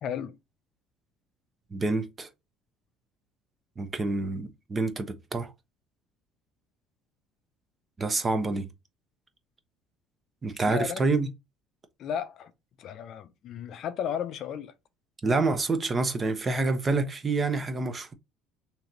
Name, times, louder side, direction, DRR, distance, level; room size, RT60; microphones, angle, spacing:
voice 1, 0.0-0.4 10.6-11.0 12.0-12.5 12.8-14.7, left 8 dB, 55° left, 0.5 m, -34 dB
voice 2, 1.7-2.3 3.8-5.5 8.0-8.7 10.4-11.3 15.2-18.1, right 3 dB, 25° right, 0.7 m, -27 dB
3.1 x 2.9 x 3.8 m
cardioid pair, 110°, 0 cm